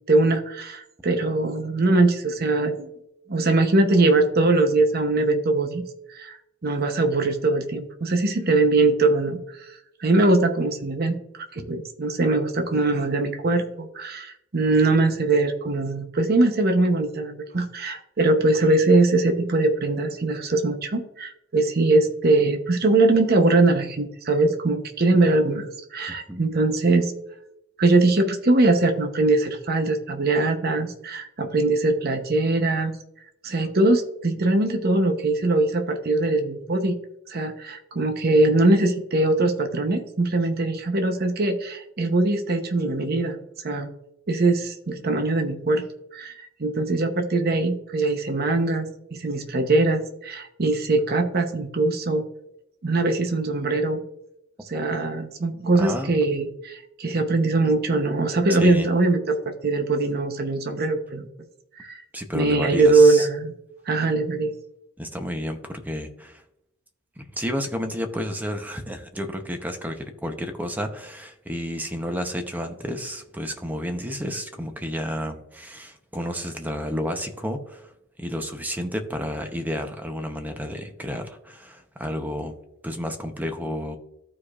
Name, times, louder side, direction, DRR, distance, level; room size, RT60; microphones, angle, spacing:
voice 1, 0.0-2.9 3.3-5.8 6.1-6.4 6.6-27.1 27.8-33.0 33.4-36.9 37.3-43.9 44.3-45.8 46.1-52.2 52.8-54.0 54.7-61.3 61.8-62.0 62.3-63.5 63.9-64.5, right 2 dB, 50° right, 6 dB, 0.8 m, -22 dB
voice 2, 26.1-26.4 55.8-56.1 58.5-58.9 62.1-63.3 65.0-66.4 67.2-77.9 78.2-82.5 82.8-84.0, equal, 10° right, 6 dB, 0.7 m, -31 dB
14.0 x 4.9 x 2.4 m, 0.84 s
head